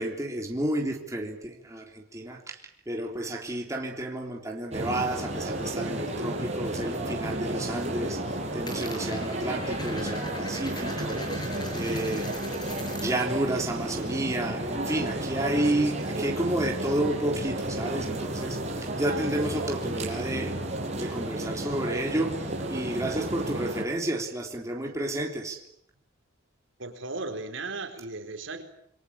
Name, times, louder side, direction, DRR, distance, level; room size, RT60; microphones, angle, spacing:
voice 1, 0.0-2.6 2.9-8.2 8.5-11.2 11.7-12.3 12.9-20.6 21.0-22.4 22.7-25.6, right 1 dB, 15° right, 1 dB, 3.5 m, -31 dB
sound 1, 4.7-23.8, right 1 dB, 35° right, 6.0 m, -32 dB
Coin (dropping), 5.8-7.0 7.3-7.8 8.0-13.3 13.6-15.3, left 1 dB, 20° left, 6.5 m, -42 dB
voice 2, 26.8-28.6, right 3 dB, 65° right, 6 dB, 4.3 m, -36 dB
28.5 x 22.5 x 8.8 m, 0.71 s
head